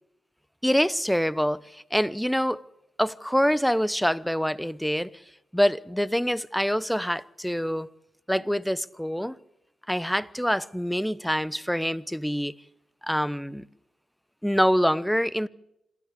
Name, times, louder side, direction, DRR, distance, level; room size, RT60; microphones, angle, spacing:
voice 1, 0.6-2.6 3.0-5.1 5.5-7.9 8.3-9.4 9.9-12.5 13.0-13.7 14.4-15.5, equal, ahead, 0.9 m, -25 dB
27.5 x 12.5 x 8.3 m
cardioid pair, 60°, 0 cm